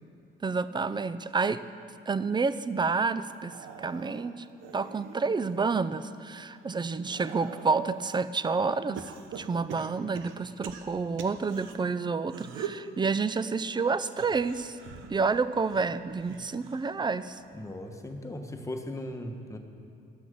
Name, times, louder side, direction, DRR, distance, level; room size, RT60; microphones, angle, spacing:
voice 1, 0.4-1.6 2.1-4.5 4.7-14.8 15.1-17.4, right 4 dB, 20° right, 14 dB, 0.5 m, -29 dB
sound 1, 3.3-5.6 6.1-8.1 9.0-11.7 12.2-12.9 14.1-17.0 17.3-17.7 18.9-19.0, right 7 dB, 80° right, 0.9 m, -43 dB
voice 2, 17.5-19.6, left 1 dB, 15° left, 4 dB, 1.3 m, -38 dB
13.5 x 6.1 x 7.6 m, 2.5 s
cardioid pair, 90°, 20 cm